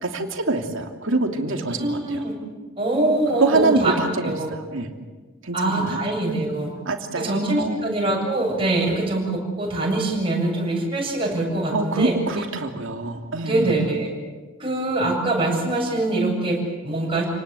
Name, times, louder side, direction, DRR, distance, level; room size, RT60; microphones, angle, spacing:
voice 1, 0.0-2.2 3.4-4.9 5.4-6.4 6.8-7.9 11.7-13.8, right 3 dB, 65° right, 4 dB, 2.9 m, -25 dB
voice 2, 1.8-2.3 2.8-3.9 4.2-4.5 5.5-6.7 7.2-12.1 13.4-14.1 14.6-17.2, right 2 dB, 25° right, -2 dB, 7.9 m, -23 dB
28.5 x 19.5 x 8.5 m, 1.4 s
head